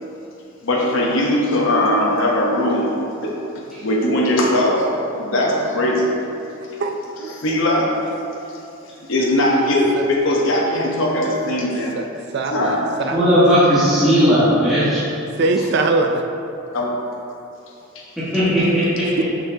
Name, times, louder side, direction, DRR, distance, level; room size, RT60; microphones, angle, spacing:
voice 1, 0.6-3.5 3.8-4.9 5.2-6.2 7.2-7.9 8.5-8.6 9.1-12.0 12.5-12.9 16.7-17.0 17.9-18.1, left 1 dB, 70° left, -3 dB, 0.8 m, -20 dB
voice 2, 6.8-7.4 9.9-10.0 11.9-12.1 12.3-13.3 15.4-16.2 19.2-19.3, right 3 dB, 55° right, 5 dB, 0.4 m, -21 dB
voice 3, 13.1-15.0 18.2-19.1, equal, ahead, -14 dB, 1.4 m, -16 dB
6.5 x 6.1 x 2.7 m, 2.7 s
head